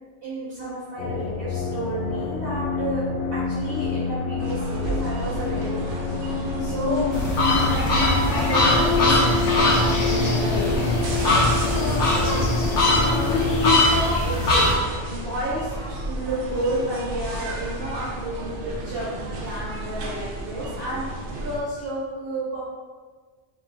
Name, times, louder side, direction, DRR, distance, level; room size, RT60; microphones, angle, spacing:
voice 1, 0.2-7.1 7.5-22.6, right 1 dB, 55° right, -10 dB, 1.3 m, -31 dB
sound 1, 1.0-13.8, left 4 dB, 60° left, 0.6 m, -26 dB
sound 2, 4.4-21.6, right 2 dB, 80° right, 1.0 m, -33 dB
sound 3, 7.1-14.7, left 2 dB, 85° left, 1.1 m, -22 dB
5.4 x 3.0 x 2.6 m, 1.5 s
omnidirectional pair, 1.2 m